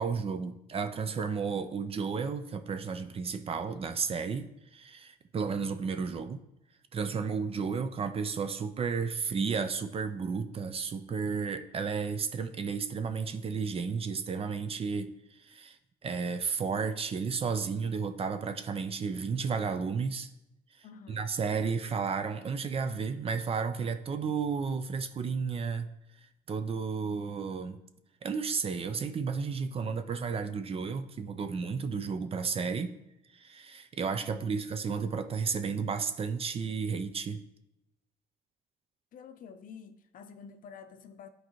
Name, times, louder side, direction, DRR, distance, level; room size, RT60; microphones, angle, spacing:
voice 1, 0.0-6.4 6.9-15.1 15.4-15.8 16.0-20.3 21.1-25.9 26.5-27.8 28.2-32.9 33.3-37.4, right 5 dB, 35° right, 0.6 m, -32 dB
voice 2, 20.8-21.4 29.8-29.9 34.3-34.6 39.1-41.3, left 6 dB, 55° left, 0.6 m, -49 dB
11.5 x 4.6 x 3.1 m
cardioid pair, 110°, 17 cm